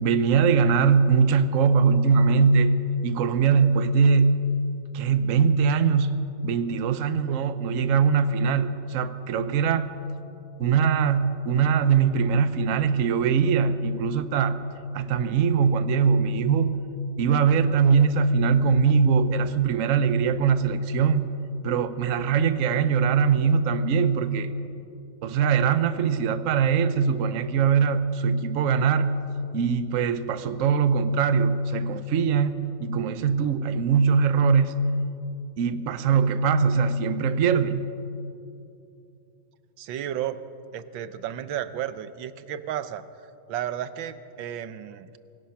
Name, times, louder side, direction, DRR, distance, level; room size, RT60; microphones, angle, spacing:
voice 1, 0.0-2.8 3.0-4.4 4.9-6.1 6.4-9.9 10.6-14.6 14.9-16.8 17.2-21.3 21.6-24.5 25.2-29.2 29.5-34.7 35.6-37.9, right 6 dB, 55° right, 12 dB, 1.0 m, -22 dB
voice 2, 39.8-40.4 40.7-43.0 43.5-45.1, right 10 dB, 80° right, 12 dB, 1.6 m, -33 dB
25.5 x 17.5 x 5.8 m, 2.7 s
omnidirectional pair, 2.1 m